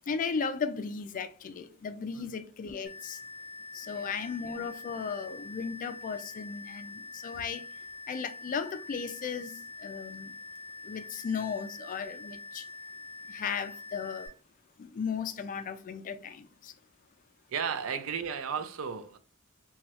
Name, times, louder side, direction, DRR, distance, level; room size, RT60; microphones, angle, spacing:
voice 1, 0.1-3.2 3.7-7.6 8.1-10.3 10.8-12.6 13.3-14.3 14.8-16.7, left 6 dB, 40° left, 0.3 m, -36 dB
sound 1, 2.9-14.3, left 3 dB, ahead, 1.4 m, -45 dB
voice 2, 17.5-19.2, right 6 dB, 75° right, 0.4 m, -34 dB
3.0 x 2.3 x 2.8 m
head